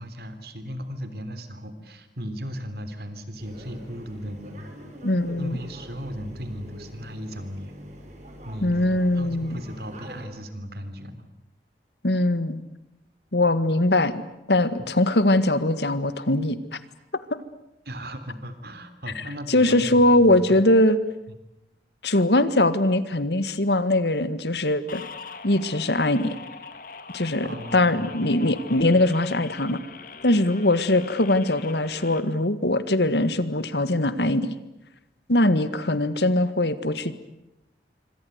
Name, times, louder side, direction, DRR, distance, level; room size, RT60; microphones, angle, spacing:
voice 1, 0.0-4.7 5.4-7.7 8.4-11.3 17.9-20.6 21.3-21.4 27.4-28.0, equal, 60° right, 10 dB, 3.4 m, -36 dB
sound 1, 3.4-10.3, equal, 40° right, 5.9 m, -44 dB
voice 2, 5.0-5.6 8.6-9.6 12.0-12.6 13.3-14.2 14.5-16.6 19.2-21.0 22.0-25.0 25.4-26.4 27.1-29.8 30.2-34.5 35.3-37.1, left 1 dB, 75° left, 13 dB, 1.8 m, -21 dB
sound 2, 24.9-32.2, left 5 dB, 50° left, 2.2 m, -42 dB
26.5 x 25.5 x 8.1 m, 0.89 s
head